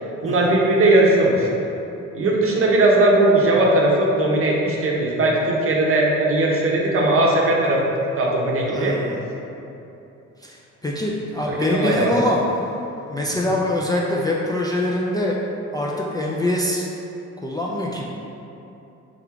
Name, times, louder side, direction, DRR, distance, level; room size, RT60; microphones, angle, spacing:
voice 1, 0.2-1.5 2.1-7.8 8.2-9.0 11.4-12.2 13.3-13.5, right 2 dB, 45° right, -2 dB, 0.7 m, -18 dB
voice 2, 8.7-9.2 10.4-10.6 10.8-12.4 13.1-15.4 15.7-16.8 17.4-18.0, left 1 dB, 15° left, -4 dB, 0.3 m, -24 dB
3.6 x 2.4 x 4.5 m, 2.9 s
cardioid pair, 90°, 30 cm